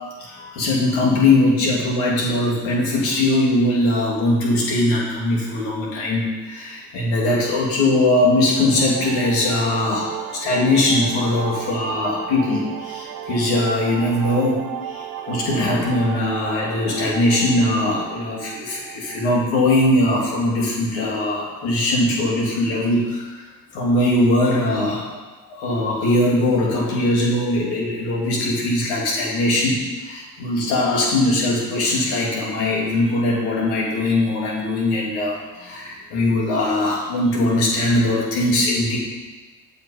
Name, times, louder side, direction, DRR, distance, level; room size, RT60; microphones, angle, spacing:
voice 1, 0.2-23.5 23.7-25.2 25.5-39.0, left 1 dB, 85° left, -3 dB, 2.3 m, -20 dB
sound 1, 8.3-19.4, right 11 dB, 70° right, 0.8 m, -34 dB
7.6 x 6.0 x 4.9 m, 1.3 s
supercardioid pair, 75°, 37 cm